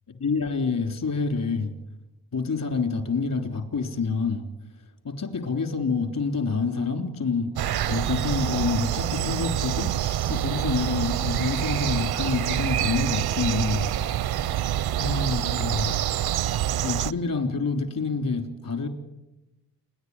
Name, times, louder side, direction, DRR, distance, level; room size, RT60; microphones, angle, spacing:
voice 1, 0.2-1.7 2.3-4.5 5.0-7.6 7.9-13.9 15.0-15.9 16.8-18.9, left 4 dB, 60° left, 7 dB, 3.6 m, -27 dB
sound 1, 7.6-17.1, right 12 dB, 80° right, 0.7 m, -26 dB
28.5 x 11.0 x 9.7 m, 0.98 s
cardioid pair, 70°, 38 cm